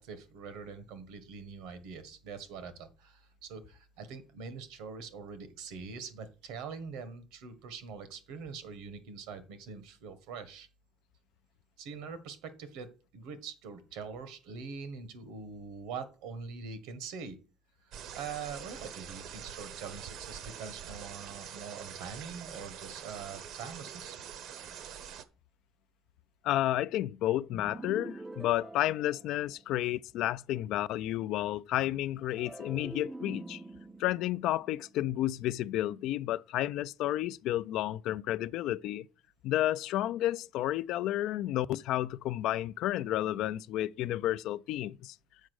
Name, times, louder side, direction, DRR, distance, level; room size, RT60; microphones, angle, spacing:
voice 1, 0.0-10.7 11.8-17.4 17.8-24.2, right 5 dB, 85° right, 1.4 m, -44 dB
sound 1, 17.9-25.2, right 8 dB, 65° right, 0.8 m, -45 dB
voice 2, 26.4-33.6 34.0-39.1 39.4-45.1, left 14 dB, 65° left, 0.4 m, -31 dB
sound 2, 27.5-29.9 32.3-35.6, right 2 dB, 10° right, 0.4 m, -46 dB
7.3 x 5.0 x 6.4 m
cardioid pair, 135°, 0 cm